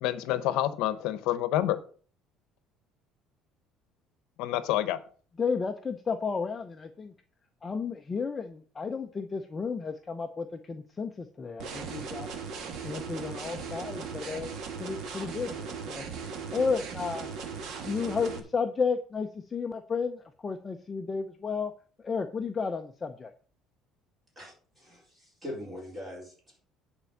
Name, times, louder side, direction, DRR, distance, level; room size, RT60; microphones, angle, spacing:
voice 1, 0.0-1.8 4.4-5.0, left 13 dB, 75° left, 14 dB, 0.8 m, -28 dB
voice 2, 5.4-7.1 7.6-12.3 12.8-14.5 14.8-16.1 16.5-17.3 17.8-21.7 22.0-23.3, left 5 dB, 20° left, 7 dB, 0.6 m, -32 dB
sound 1, 11.6-18.4, right 5 dB, 50° right, 1.5 m, -38 dB
voice 3, 24.4-26.6, left 1 dB, 15° right, -3 dB, 4.3 m, -42 dB
9.7 x 4.3 x 7.1 m, 0.43 s
cardioid pair, 160°, 0 cm